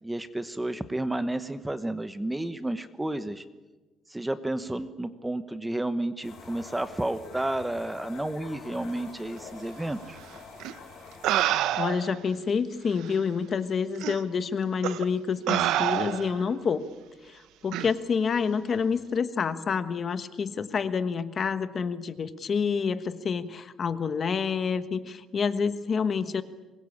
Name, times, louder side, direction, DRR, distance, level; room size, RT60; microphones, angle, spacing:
voice 1, 0.0-3.4 4.1-10.2, right 1 dB, 10° right, 11 dB, 1.0 m, -31 dB
sound 1, 6.2-11.4, left 4 dB, 55° left, 7.4 m, -46 dB
sound 2, 10.6-10.7 11.2-12.2 13.1-13.2 14.0-14.2 14.8-15.0 15.5-16.4 17.7-17.9, right 13 dB, 85° right, 0.9 m, -27 dB
voice 2, 11.8-16.8 17.2-26.4, left 6 dB, 35° left, 11 dB, 1.2 m, -28 dB
24.5 x 21.5 x 8.6 m, 1.2 s
cardioid pair, 145°, 0 cm